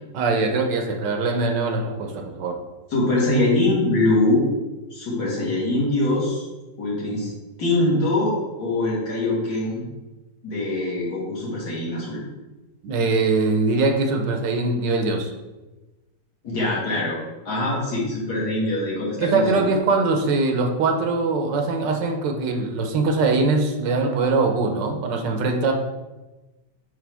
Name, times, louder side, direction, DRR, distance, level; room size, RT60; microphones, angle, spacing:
voice 1, 0.1-2.6 12.8-15.3 19.2-25.7, right 3 dB, 80° right, 4 dB, 1.4 m, -22 dB
voice 2, 2.9-4.5 4.9-6.4 6.8-7.3 7.6-9.8 10.4-12.2 16.4-17.2 17.4-19.7, left 2 dB, 60° left, -5 dB, 2.2 m, -23 dB
8.5 x 3.3 x 3.4 m, 1.1 s
omnidirectional pair, 1.9 m